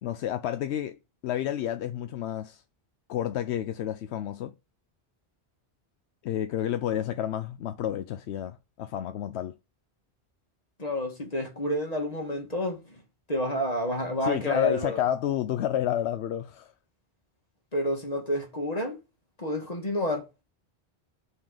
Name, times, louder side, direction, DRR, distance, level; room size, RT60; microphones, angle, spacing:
voice 1, 0.0-2.6 3.1-4.5 6.2-9.6 14.2-16.7, left 11 dB, 85° left, 0.9 m, -30 dB
voice 2, 10.8-13.0 13.3-15.0 17.7-19.0 19.4-20.3, left 1 dB, 35° left, 2.1 m, -29 dB
5.9 x 4.8 x 6.4 m
omnidirectional pair, 1.1 m